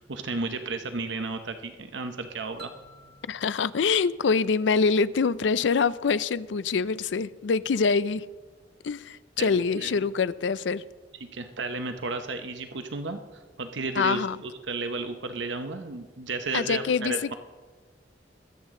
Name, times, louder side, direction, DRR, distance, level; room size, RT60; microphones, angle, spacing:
voice 1, 0.1-2.7 9.4-10.0 11.2-13.2 13.6-17.3, right 3 dB, 90° right, 7 dB, 0.8 m, -33 dB
sound 1, 2.6-5.3, right 2 dB, 60° right, 1.1 m, -52 dB
voice 2, 3.3-8.2 8.8-10.8 14.0-14.4 16.5-17.1, left 5 dB, 85° left, 17 dB, 0.5 m, -25 dB
21.0 x 8.3 x 3.7 m, 1.4 s
head